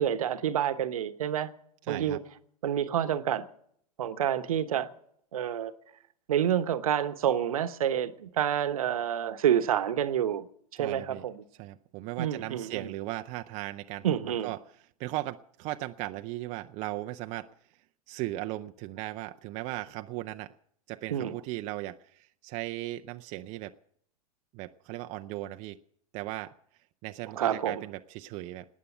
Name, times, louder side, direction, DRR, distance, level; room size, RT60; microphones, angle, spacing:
voice 1, 0.0-1.5 1.9-2.2 2.6-3.5 4.0-4.9 5.3-5.7 6.3-10.5 10.8-11.4 12.2-12.9 14.0-14.5 21.1-21.3 27.4-27.8, right 10 dB, 65° right, 1.1 m, -28 dB
voice 2, 1.9-2.2 10.8-11.2 11.6-17.5 18.1-20.5 20.9-23.7 24.5-25.8 26.1-26.5 27.0-28.6, right 17 dB, 35° right, 0.6 m, -37 dB
19.0 x 9.3 x 7.9 m
figure-of-eight pair, 95°, 19 cm